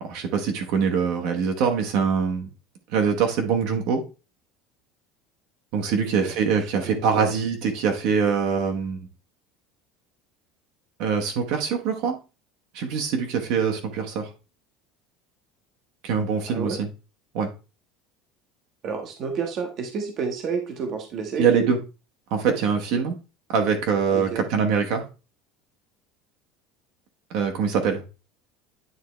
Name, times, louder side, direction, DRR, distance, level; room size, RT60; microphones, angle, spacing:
voice 1, 0.0-2.5 2.9-4.0 5.7-9.1 11.0-12.2 12.7-14.3 16.0-16.9 17.3-17.5 21.4-21.8 22.3-23.2 23.5-25.0 27.3-28.0, right 6 dB, 55° right, 4 dB, 1.1 m, -23 dB
voice 2, 6.0-6.3 6.8-7.2 16.5-16.8 18.8-21.7 24.1-24.4, right 5 dB, 35° right, 4 dB, 1.0 m, -30 dB
9.2 x 3.5 x 3.1 m, 0.30 s
cardioid pair, 175°, 0 cm